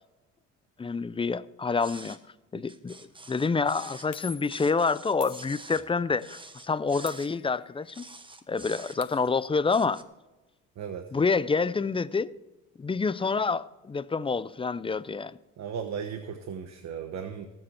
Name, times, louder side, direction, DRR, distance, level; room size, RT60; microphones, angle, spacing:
voice 1, 0.8-2.2 2.5-3.0 3.3-8.1 8.5-10.0 11.1-12.3 12.8-15.4, left 4 dB, 20° left, 0.5 m, -27 dB
sound 1, 1.8-2.2 2.7-4.1 4.5-5.9 6.2-7.3 7.9-9.2 9.7-10.0, right 2 dB, 15° right, 1.1 m, -47 dB
sound 2, 2.9-3.1 4.1-4.7 5.2-6.0 7.1-7.9 8.2-8.3 8.6-9.5, left 11 dB, 75° left, 1.0 m, -46 dB
voice 2, 15.6-17.5, right 7 dB, 60° right, 1.1 m, -36 dB
18.5 x 7.8 x 4.4 m
cardioid pair, 90°, 30 cm